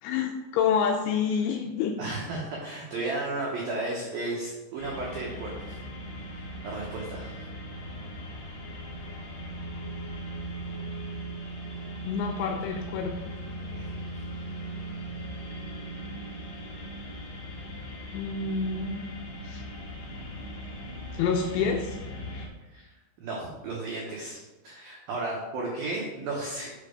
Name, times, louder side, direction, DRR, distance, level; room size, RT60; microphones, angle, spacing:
voice 1, 0.0-2.0 12.1-13.3 18.1-19.2 19.4-19.6 21.1-22.0 22.3-22.5, left 6 dB, 85° left, 3 dB, 2.8 m, -28 dB
voice 2, 2.0-5.8 6.3-7.5 13.8-14.1 22.7-22.9 23.2-26.7, right 2 dB, 85° right, -3 dB, 2.0 m, -34 dB
sound 1, 4.8-22.5, right 1 dB, 70° left, 1.7 m, -39 dB
7.5 x 5.8 x 5.1 m, 1.2 s
omnidirectional pair, 6.0 m